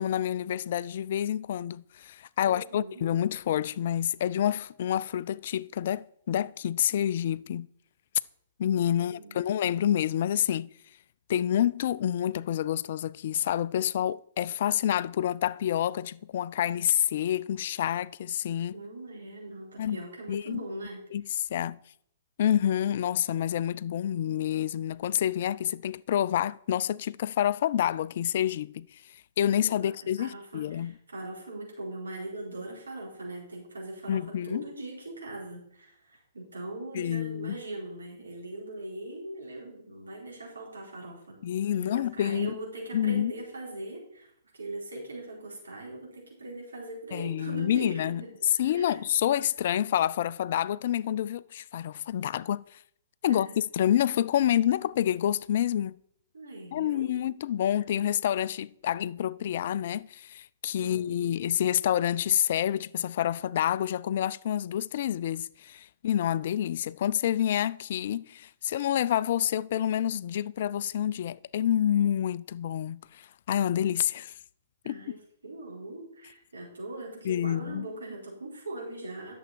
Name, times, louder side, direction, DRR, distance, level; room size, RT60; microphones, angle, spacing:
voice 1, 0.0-7.7 8.6-10.7 11.3-18.8 19.8-20.0 20.3-20.6 21.1-21.8 22.4-28.9 29.4-30.9 34.1-34.6 36.9-37.6 41.4-42.5 42.9-43.3 47.1-48.2 48.6-52.6 53.2-53.5 53.7-56.0 56.7-74.3 74.9-75.0 77.2-77.9, left 10 dB, 50° left, 0.3 m, -28 dB
voice 2, 2.5-3.0 9.0-9.4 18.7-21.0 21.3-21.4 29.5-29.9 30.2-41.4 41.7-49.0 53.3-53.5 56.3-57.1 60.8-61.4 74.8-79.3, right 2 dB, 75° right, 4.3 m, -41 dB
11.0 x 7.2 x 4.5 m
figure-of-eight pair, 115°, 0 cm